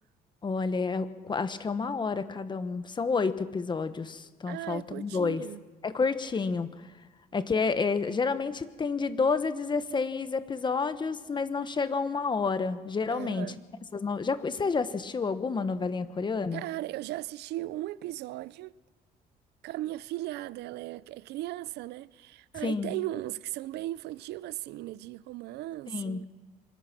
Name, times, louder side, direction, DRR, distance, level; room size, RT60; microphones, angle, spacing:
voice 1, 0.4-5.4 5.8-6.7 7.3-13.5 13.9-16.6 22.6-22.9 25.9-26.2, left 4 dB, 25° left, 1.3 m, -29 dB
voice 2, 4.5-5.6 13.1-13.6 16.5-18.7 19.6-26.2, right 16 dB, 80° right, 0.6 m, -37 dB
24.5 x 21.0 x 6.1 m
cardioid pair, 110°, 17 cm